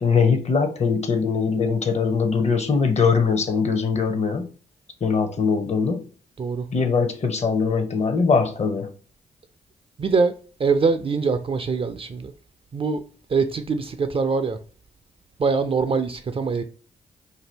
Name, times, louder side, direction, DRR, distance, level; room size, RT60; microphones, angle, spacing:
voice 1, 0.0-4.5 5.0-6.0 6.7-8.9, left 5 dB, 40° left, 0.6 m, -21 dB
voice 2, 6.4-6.7 10.0-10.3 10.6-12.3 12.7-13.0 13.3-14.6 15.4-16.6, right 4 dB, 30° right, 0.3 m, -23 dB
2.6 x 2.4 x 3.2 m
hypercardioid pair, 45°, 18 cm